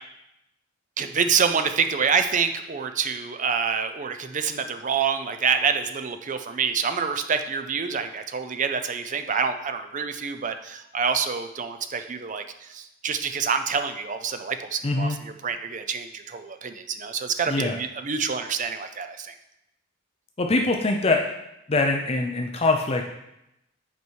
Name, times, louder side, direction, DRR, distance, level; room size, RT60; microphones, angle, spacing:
voice 1, 1.0-15.1 15.4-19.3, right 6 dB, 40° right, 8 dB, 0.5 m, -27 dB
voice 2, 14.8-15.2 17.5-17.8 20.4-21.3 21.7-23.1, left 2 dB, 30° left, 3 dB, 0.5 m, -23 dB
8.1 x 4.8 x 4.6 m, 0.86 s
head